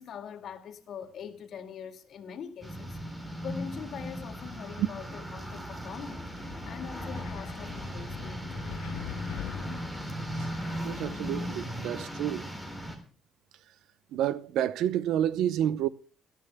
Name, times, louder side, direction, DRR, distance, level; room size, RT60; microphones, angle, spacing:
voice 1, 0.0-3.0 3.4-8.6 13.0-13.1, left 7 dB, 60° left, 2.1 m, -43 dB
sound 1, 2.6-13.0, equal, 10° right, 3.7 m, -37 dB
Wind, 6.4-11.7, left 12 dB, 85° left, 0.6 m, -44 dB
voice 2, 10.8-12.5 14.1-15.9, right 11 dB, 80° right, 0.8 m, -29 dB
29.5 x 10.5 x 2.2 m
cardioid pair, 95°, 0 cm